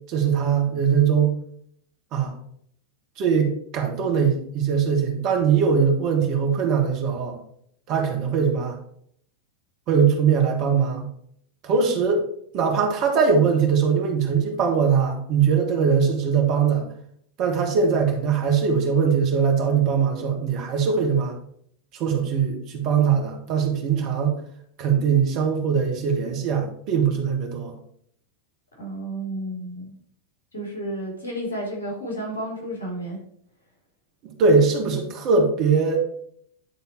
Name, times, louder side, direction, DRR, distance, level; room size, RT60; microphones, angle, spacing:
voice 1, 0.1-1.4 2.1-2.3 3.2-7.4 7.9-8.8 9.9-11.1 11.6-12.3 12.5-16.9 17.4-21.4 21.9-24.4 24.8-27.7 34.2-36.0, right 6 dB, 40° right, 2 dB, 1.5 m, -21 dB
voice 2, 28.8-29.9 30.5-33.2, right 1 dB, 70° left, -2 dB, 2.8 m, -31 dB
9.4 x 3.8 x 4.4 m, 0.66 s
figure-of-eight pair, 90°, 0 cm